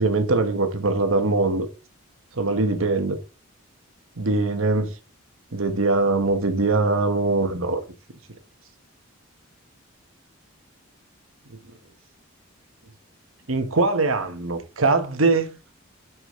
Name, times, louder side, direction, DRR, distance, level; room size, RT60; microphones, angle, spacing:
voice 1, 0.0-1.7 2.4-3.2 4.2-4.9 5.5-7.8 13.5-15.6, right 3 dB, 75° right, 1.2 m, -22 dB
6.3 x 6.2 x 3.7 m
head